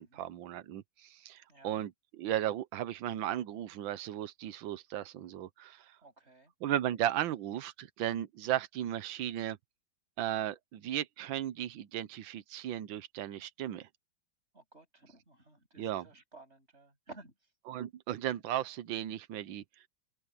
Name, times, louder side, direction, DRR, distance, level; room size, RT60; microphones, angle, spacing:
voice 1, 0.0-6.0 6.6-9.6 10.2-13.9 15.8-16.1 17.7-19.6, right 12 dB, 85° right, 1.6 m, -35 dB
voice 2, 6.0-6.5 14.5-17.5, right 2 dB, 35° right, 7.4 m, -55 dB
open air
omnidirectional pair, 2.1 m